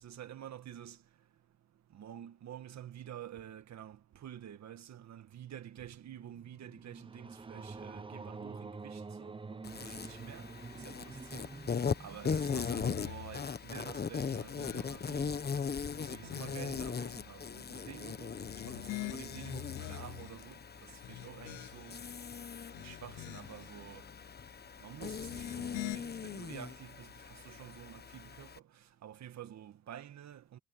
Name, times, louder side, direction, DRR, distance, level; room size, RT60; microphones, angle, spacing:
voice 1, 0.0-1.0 1.9-10.5 10.7-11.5 12.0-15.4 16.1-18.4 18.6-20.6 21.1-22.0 22.7-24.0 24.8-28.5 29.0-30.6, right 10 dB, 65° right, 1.7 m, -49 dB
sound 1, 6.0-13.3, right 4 dB, 15° right, 0.7 m, -48 dB
Insect, 9.6-28.6, left 6 dB, 35° left, 1.2 m, -39 dB
sound 2, 12.2-13.5 14.1-15.2 15.7-16.8 18.3-20.4 20.9-22.1 22.6-23.7 25.2-26.0, left 20 dB, 85° left, 0.5 m, -46 dB
cardioid pair, 90°, 30 cm